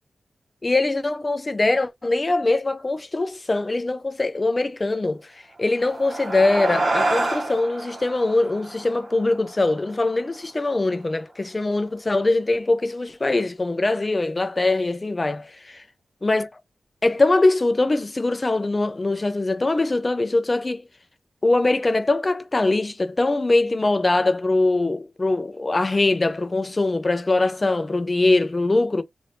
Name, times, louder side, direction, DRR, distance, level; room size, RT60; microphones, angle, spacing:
voice 1, 0.6-15.8 16.2-16.5 17.0-20.8 21.4-29.0, left 2 dB, 30° left, 0.6 m, -22 dB
sound 1, 5.6-10.4, right 2 dB, 55° right, 1.2 m, -28 dB
3.4 x 2.6 x 2.7 m
wide cardioid pair, 100°, 0 cm